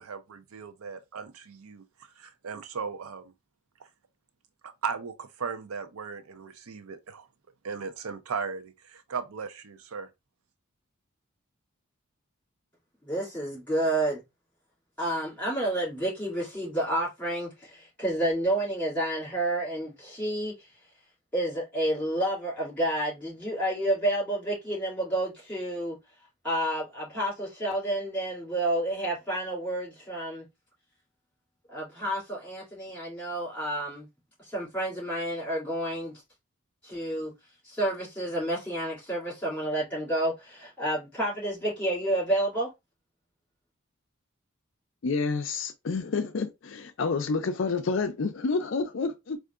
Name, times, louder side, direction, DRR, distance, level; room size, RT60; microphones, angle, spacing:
voice 1, 0.0-1.8 2.2-3.3 4.6-7.3 7.6-10.1, right 5 dB, 90° right, 0.5 m, -37 dB
voice 2, 13.0-14.2 15.0-20.5 21.3-26.0 26.4-30.4 31.7-34.1 34.5-36.1 36.8-37.3 37.6-42.7, right 1 dB, 5° left, 2.3 m, -30 dB
voice 3, 45.0-49.4, left 4 dB, 60° left, 0.4 m, -29 dB
4.4 x 2.5 x 2.4 m
head